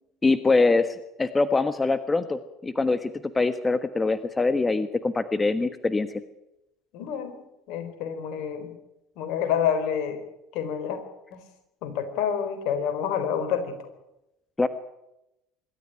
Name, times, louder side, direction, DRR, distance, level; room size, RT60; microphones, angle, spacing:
voice 1, 0.2-6.2 14.6-14.7, left 3 dB, 20° left, 11 dB, 1.4 m, -24 dB
voice 2, 6.9-8.7 9.2-10.2 10.5-11.0 11.3-11.4 11.8-13.9, left 8 dB, 65° left, 9 dB, 4.3 m, -28 dB
25.0 x 13.0 x 9.9 m, 0.89 s
hypercardioid pair, 70°, 0 cm